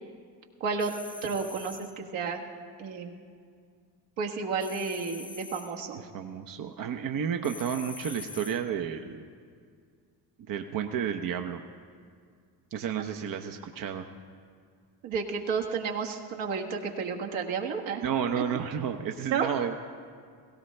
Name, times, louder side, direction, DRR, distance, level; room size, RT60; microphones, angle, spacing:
voice 1, 0.6-0.9 1.2-2.4 2.8-3.2 4.2-6.0 15.0-18.0 18.4-18.5 19.3-19.5, right 5 dB, 65° right, 1 dB, 1.7 m, -31 dB
sound 1, 0.8-2.0 4.6-5.8 7.4-8.7, left 4 dB, 10° left, 0.7 m, -44 dB
voice 2, 6.0-9.2 10.5-11.6 12.7-14.1 18.0-19.7, right 8 dB, 45° right, 5 dB, 0.8 m, -31 dB
17.0 x 16.5 x 3.3 m, 2.1 s
hypercardioid pair, 70°, 48 cm